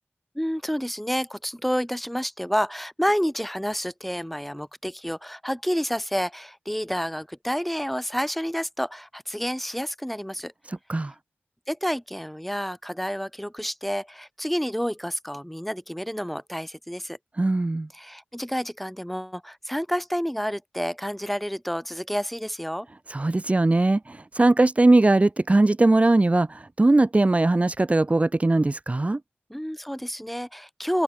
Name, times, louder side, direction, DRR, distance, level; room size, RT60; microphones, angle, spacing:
voice 1, 0.3-10.5 11.7-17.2 17.9-22.9 29.5-31.0, equal, ahead, 6.6 m, -29 dB
voice 2, 10.7-11.1 17.4-17.9 23.1-29.2, right 2 dB, 30° right, 4.1 m, -20 dB
wide cardioid pair, 80°, 4 cm